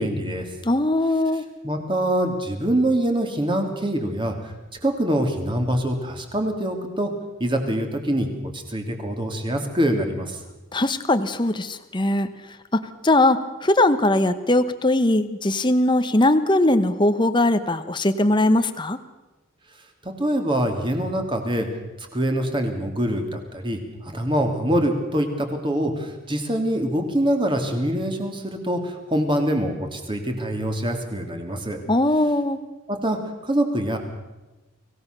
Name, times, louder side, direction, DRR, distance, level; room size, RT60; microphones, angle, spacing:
voice 1, 0.0-0.5 1.6-4.5 4.8-7.1 7.4-8.3 8.5-10.4 20.0-21.7 22.1-31.8 32.9-34.0, right 1 dB, 25° right, 4 dB, 2.8 m, -24 dB
voice 2, 0.6-1.4 10.7-12.3 12.7-19.0 31.9-32.6, left 1 dB, 25° left, 10 dB, 1.0 m, -20 dB
25.0 x 17.0 x 6.8 m, 1.1 s
head